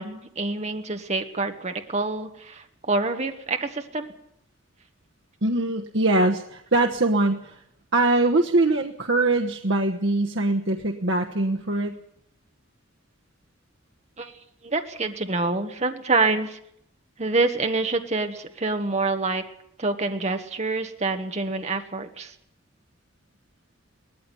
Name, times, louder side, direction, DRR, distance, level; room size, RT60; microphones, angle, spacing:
voice 1, 0.0-4.1 14.2-14.3 14.6-16.6 17.2-19.4 19.8-22.3, right 3 dB, 35° right, 6 dB, 1.3 m, -26 dB
voice 2, 5.4-7.6 7.9-12.0, right 2 dB, 65° right, 2 dB, 1.2 m, -22 dB
19.0 x 14.5 x 9.9 m, 0.74 s
head